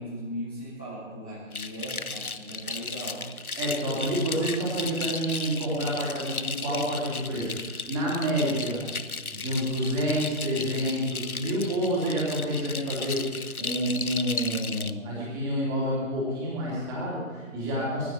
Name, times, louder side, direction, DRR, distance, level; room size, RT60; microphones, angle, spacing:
voice 1, 0.0-3.3 13.0-13.1, equal, 10° left, -8 dB, 0.9 m, -38 dB
sound 1, 1.5-14.9, left 4 dB, 85° left, 1.0 m, -35 dB
voice 2, 3.6-8.8 9.3-13.2 13.6-18.1, equal, 5° right, -6 dB, 2.9 m, -28 dB
19.5 x 14.5 x 4.4 m, 1.4 s
figure-of-eight pair, 155°, 42 cm